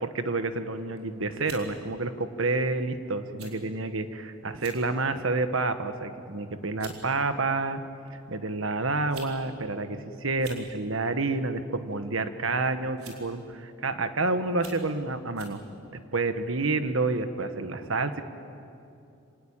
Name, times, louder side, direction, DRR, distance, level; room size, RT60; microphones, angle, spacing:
voice 1, 0.0-7.8 8.1-15.6 16.1-18.2, right 3 dB, 70° right, 9 dB, 1.3 m, -29 dB
sound 1, 0.8-1.0 1.4-1.7 2.5-2.7 3.4-3.5 3.9-4.0 4.5-4.8 5.3-5.6 6.4-6.5 6.8-7.0 8.1-8.2 8.9-9.4 9.6-9.7 10.3-10.7 11.9-12.2 13.0-13.3 13.9-14.0 14.5-14.9 15.4-15.6, right 4 dB, 85° right, 4.8 m, -46 dB
26.0 x 18.5 x 8.9 m, 2.6 s
head